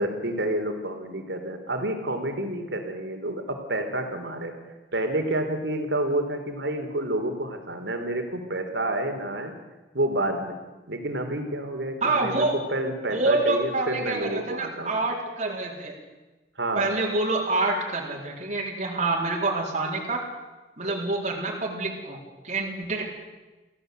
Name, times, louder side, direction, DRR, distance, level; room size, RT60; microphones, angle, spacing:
voice 1, 0.0-4.5 4.9-9.6 9.9-10.6 10.9-15.0 16.6-16.9, right 1 dB, 90° right, 5 dB, 3.8 m, -29 dB
voice 2, 12.0-12.5 13.1-16.0 16.8-20.2 20.8-23.1, right 2 dB, 40° right, -2 dB, 4.3 m, -27 dB
24.0 x 16.5 x 8.1 m, 1.2 s
head